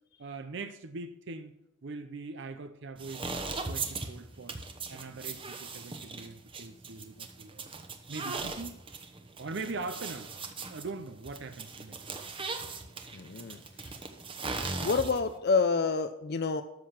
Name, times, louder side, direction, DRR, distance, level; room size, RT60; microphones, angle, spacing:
voice 1, 0.2-1.5 1.8-3.3 3.6-4.6 4.9-7.7 8.1-8.8 9.4-10.3 10.7-12.0, right 3 dB, 65° right, 0.6 m, -41 dB
sound 1, 3.0-15.4, right 4 dB, 25° right, 1.0 m, -39 dB
voice 2, 13.1-14.0 14.8-16.6, left 4 dB, 55° left, 0.5 m, -28 dB
13.0 x 6.6 x 5.9 m
head